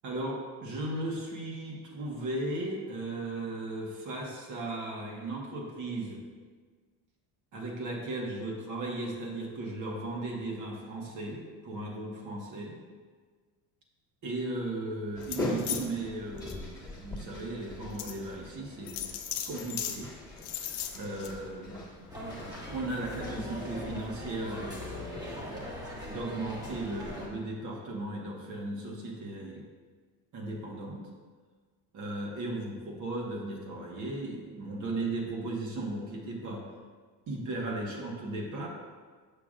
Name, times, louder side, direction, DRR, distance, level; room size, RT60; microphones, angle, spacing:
voice 1, 0.0-6.2 7.5-12.8 14.2-19.1 19.5-20.1 20.9-21.8 22.7-25.7 26.0-29.6 30.3-31.1 31.9-36.6 37.3-38.7, right 2 dB, 50° right, -1 dB, 1.3 m, -36 dB
sound 1, 15.2-15.9 16.4-16.5 17.2-17.3 18.0-18.2 18.9-20.0 20.4-21.3, left 10 dB, 75° left, 0.7 m, -36 dB
sound 2, 15.2-24.6, left 1 dB, 10° left, 1.3 m, -42 dB
sound 3, 22.1-27.3, left 1 dB, 10° right, 1.2 m, -40 dB
6.8 x 5.8 x 2.5 m, 1.5 s
cardioid pair, 125°, 40 cm